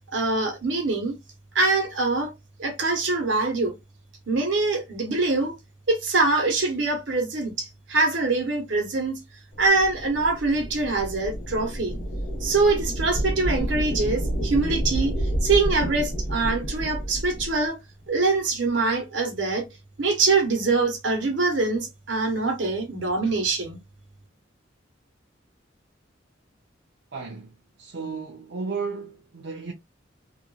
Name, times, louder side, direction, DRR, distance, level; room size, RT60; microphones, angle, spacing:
voice 1, 0.1-1.2 1.5-2.3 2.6-3.8 4.3-5.6 5.9-9.2 9.6-12.0 12.4-15.1 15.4-17.8 18.1-19.6 20.0-23.8, right 3 dB, 80° right, 1.1 m, -24 dB
sound 1, 9.5-17.6, right 1 dB, 45° left, 1.1 m, -29 dB
voice 2, 27.1-29.7, right 4 dB, 60° right, 0.6 m, -34 dB
2.9 x 2.5 x 2.4 m
head